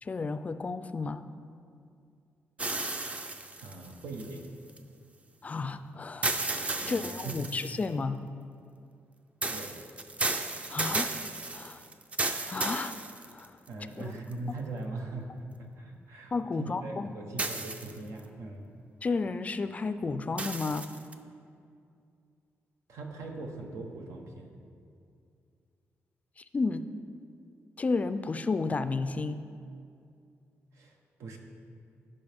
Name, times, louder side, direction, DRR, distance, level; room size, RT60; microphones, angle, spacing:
voice 1, 0.0-1.2 5.4-8.2 10.7-11.1 11.5-11.8 12.5-13.0 13.3-13.5 14.0-14.1 16.3-17.1 19.0-20.9 26.4-26.9 27.8-29.4, left 4 dB, 30° left, 11 dB, 0.3 m, -32 dB
sound 1, 2.6-4.8 6.2-7.9 9.4-13.7 14.3-14.4 17.4-18.2 20.4-21.1, right 2 dB, 25° right, 0.5 m, -34 dB
voice 2, 3.6-4.5 6.8-7.6 9.5-9.8 13.7-15.3 15.6-18.7 22.9-24.5 30.7-31.4, right 2 dB, 90° right, 2 dB, 1.1 m, -41 dB
15.0 x 5.4 x 3.5 m, 2.4 s
cardioid pair, 125°, 5 cm